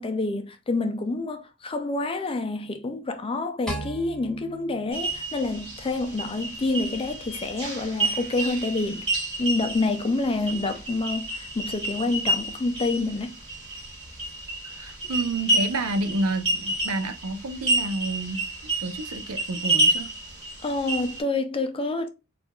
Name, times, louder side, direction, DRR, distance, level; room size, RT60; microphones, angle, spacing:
voice 1, 0.0-9.0 9.4-13.4 20.6-22.1, left 2 dB, 25° left, 0.4 m, -28 dB
sound 1, 3.7-6.0, right 1 dB, 5° left, 1.0 m, -38 dB
sound 2, 4.9-21.2, right 2 dB, 25° right, 2.1 m, -29 dB
voice 2, 14.6-20.1, right 2 dB, 75° right, 0.6 m, -30 dB
4.5 x 2.4 x 2.2 m
head